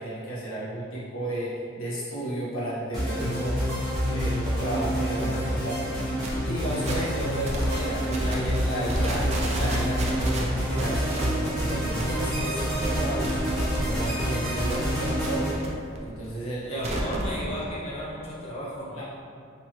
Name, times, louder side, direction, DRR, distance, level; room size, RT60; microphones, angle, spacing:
voice 1, 0.0-3.6 4.0-15.6 16.0-17.0 19.0-19.1, right 1 dB, 90° left, -9 dB, 1.5 m, -33 dB
sound 1, 2.9-15.5, equal, ahead, 1.4 m, -28 dB
sound 2, 6.2-6.4 6.8-7.1 7.4-7.8 8.1-8.6 8.8-14.1 14.4-15.7 15.9-17.3, right 1 dB, 30° right, 0.5 m, -33 dB
voice 2, 16.6-19.0, equal, 30° left, -6 dB, 0.5 m, -34 dB
4.6 x 3.5 x 3.0 m, 2.4 s
head